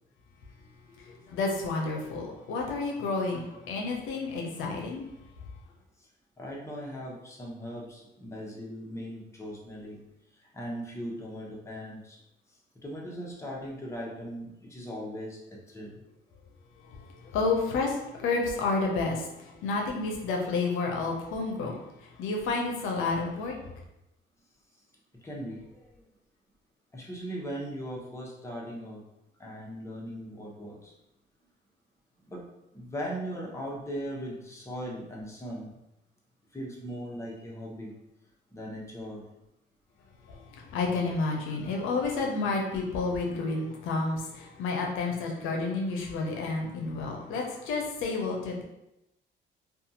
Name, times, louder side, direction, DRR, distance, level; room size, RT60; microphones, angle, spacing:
voice 1, 0.9-5.1 16.8-23.6 40.2-48.6, left 3 dB, 90° left, 0 dB, 0.5 m, -30 dB
voice 2, 6.4-10.0 10.5-12.2 12.8-16.0 25.2-26.0 26.9-29.0 29.4-30.9 32.3-32.4 32.7-35.7 36.5-37.9 38.5-39.2, equal, 15° left, -3 dB, 0.8 m, -39 dB
2.5 x 2.3 x 2.8 m, 0.88 s
cardioid pair, 90°, 20 cm